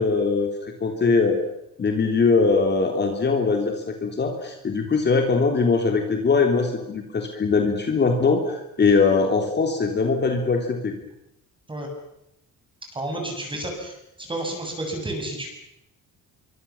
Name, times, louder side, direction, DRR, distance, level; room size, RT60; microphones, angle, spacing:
voice 1, 0.0-1.4 1.8-10.9, left 4 dB, 30° left, 3 dB, 3.3 m, -21 dB
voice 2, 12.9-15.5, right 1 dB, 15° right, 2 dB, 7.6 m, -31 dB
26.0 x 24.0 x 7.2 m, 0.85 s
cardioid pair, 145°, 33 cm